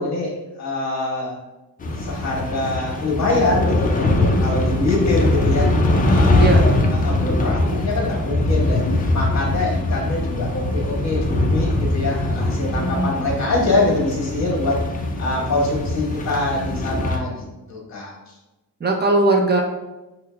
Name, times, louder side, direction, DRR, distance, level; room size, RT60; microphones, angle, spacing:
voice 1, 0.0-1.4 2.0-6.6 6.9-14.8 15.2-17.3 17.7-18.2, left 2 dB, 45° left, -3 dB, 1.3 m, -24 dB
sound 1, 1.8-17.2, left 2 dB, 25° left, 0.4 m, -21 dB
voice 2, 12.7-13.1 18.8-19.6, right 2 dB, 30° right, 1 dB, 0.6 m, -19 dB
5.8 x 2.2 x 2.2 m, 1.0 s
cardioid pair, 120°, 36 cm